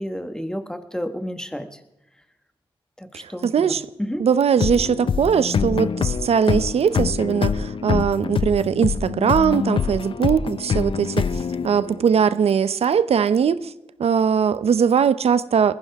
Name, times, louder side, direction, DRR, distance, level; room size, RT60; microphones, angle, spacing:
voice 1, 0.0-1.8 3.0-4.2, equal, 5° left, 1.5 m, -31 dB
voice 2, 3.1-3.8 4.2-13.7 14.0-15.7, right 7 dB, 85° right, 0.7 m, -20 dB
sound 1, 4.6-12.2, left 6 dB, 60° left, 0.5 m, -25 dB
20.5 x 15.0 x 3.6 m
wide cardioid pair, 100°, 10 cm